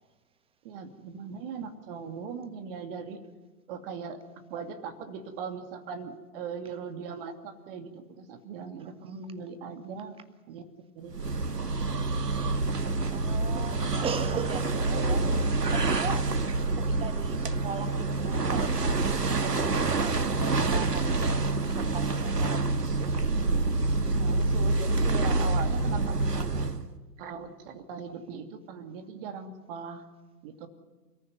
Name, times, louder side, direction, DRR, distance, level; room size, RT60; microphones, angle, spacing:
voice 1, 0.6-3.2 3.7-4.2 4.5-10.2 10.5-10.6 10.9-11.2 24.1-26.7 27.2-30.1 30.4-30.7, right 6 dB, 35° right, 7 dB, 2.7 m, -39 dB
sound 1, 11.1-26.9, right 3 dB, 75° right, 1.8 m, -27 dB
voice 2, 13.1-15.3 15.7-16.3 16.7-20.4 20.7-21.4 21.7-23.1, right 6 dB, 10° right, 12 dB, 1.4 m, -39 dB
29.0 x 14.5 x 9.5 m, 1.3 s
figure-of-eight pair, 115°, 48 cm